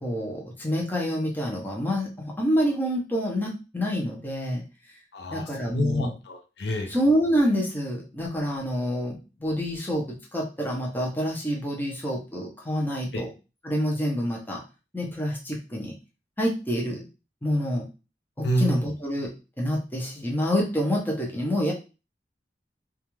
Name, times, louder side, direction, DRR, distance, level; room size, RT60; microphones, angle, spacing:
voice 1, 0.0-4.6 5.3-6.1 6.9-13.3 13.6-14.6 14.9-15.9 16.4-17.0 17.4-17.8 18.4-21.7, equal, 10° left, -2 dB, 0.6 m, -27 dB
voice 2, 5.1-6.9 13.1-13.2 18.4-18.8, equal, 70° left, 4 dB, 0.5 m, -27 dB
2.3 x 2.3 x 3.0 m, 0.31 s
head